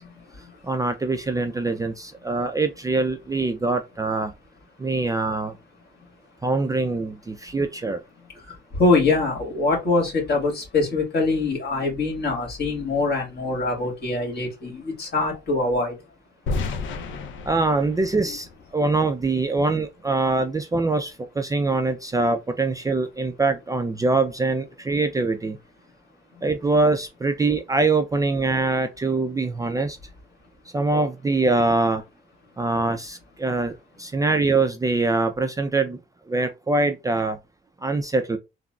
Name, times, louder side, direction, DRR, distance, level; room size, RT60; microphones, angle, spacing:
voice 1, 0.0-0.8 4.8-4.9 5.9-6.1 7.5-7.6 8.2-16.1 18.3-18.4 26.3-26.4, left 3 dB, 55° left, 1.7 m, -24 dB
voice 2, 0.6-4.3 4.8-5.6 6.4-8.0 17.5-25.6 26.4-30.0 30.7-32.0 32.6-36.0 36.3-37.4 37.8-38.4, right 3 dB, 15° right, 0.3 m, -23 dB
sound 1, 16.5-19.4, left 3 dB, 75° left, 0.5 m, -32 dB
3.6 x 2.0 x 2.3 m
cardioid pair, 90°, 20 cm